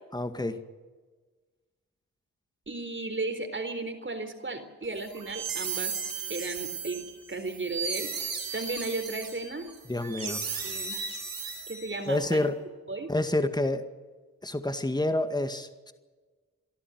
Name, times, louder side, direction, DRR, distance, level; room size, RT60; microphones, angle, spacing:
voice 1, 0.1-0.6 9.9-10.4 12.1-12.6 13.1-13.9 14.4-15.9, left 1 dB, 10° left, 8 dB, 2.0 m, -28 dB
voice 2, 2.7-5.9 6.3-7.0 7.3-9.7 10.2-11.0 11.7-12.4 12.9-13.1, right 3 dB, 35° right, 7 dB, 4.0 m, -35 dB
sound 1, 5.0-12.2, right 5 dB, 80° right, 7.4 m, -35 dB
28.5 x 11.5 x 9.6 m, 1.4 s
cardioid pair, 50°, 35 cm